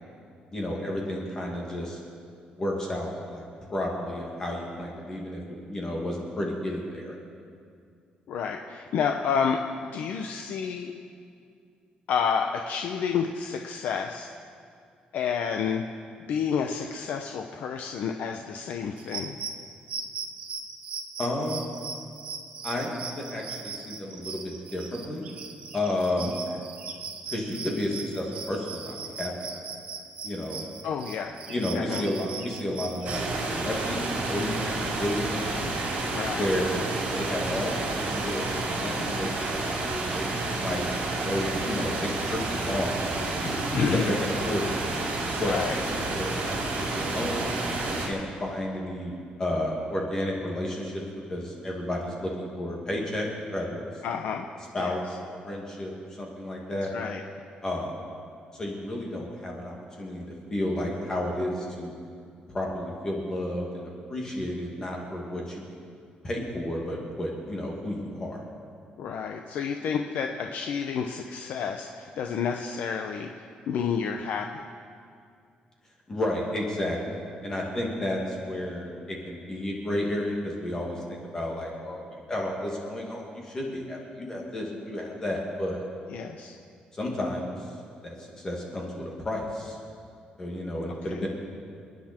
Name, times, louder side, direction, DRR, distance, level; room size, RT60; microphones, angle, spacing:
voice 1, 0.5-2.0 2.6-7.1 21.2-21.7 22.6-25.2 25.7-26.4 27.3-29.3 30.2-30.6 31.5-35.8 36.4-40.3 40.6-40.8 41.2-43.1 43.7-44.7 45.4-45.7 46.1-49.1 49.4-51.0 51.3-53.8 54.7-55.9 56.2-56.9 57.6-58.0 58.5-62.0 62.5-65.6 66.2-68.4 76.1-78.9 79.2-81.0 81.3-85.9 86.9-87.7 88.0-89.8 90.4-91.3, left 1 dB, 20° left, -2 dB, 2.4 m, -32 dB
voice 2, 8.3-10.9 12.1-14.3 15.1-15.8 16.3-19.4 30.8-32.1 36.1-36.5 43.7-44.0 45.4-45.7 54.0-54.5 54.8-55.0 56.9-57.2 69.0-74.6 86.1-86.6 91.1-91.2, left 6 dB, 70° left, 3 dB, 0.8 m, -30 dB
sound 1, 19.0-33.3, right 5 dB, 50° right, 1.3 m, -39 dB
sound 2, 33.0-48.1, right 2 dB, 65° right, 3.6 m, -30 dB
29.0 x 9.9 x 4.5 m, 2.3 s
cardioid pair, 175°, 3 cm